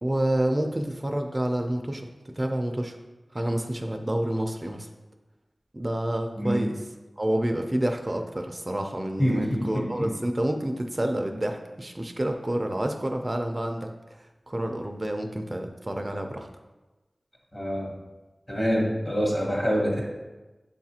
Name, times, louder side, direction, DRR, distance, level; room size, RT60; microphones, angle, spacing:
voice 1, 0.0-2.1 2.4-3.0 3.3-4.9 5.7-6.7 7.2-13.9 14.2-16.5, right 1 dB, 30° right, 4 dB, 0.4 m, -28 dB
voice 2, 9.2-10.1 17.5-17.9 18.5-20.0, equal, 35° left, -3 dB, 1.1 m, -26 dB
6.9 x 2.4 x 2.8 m, 1.2 s
wide cardioid pair, 50°, 0 cm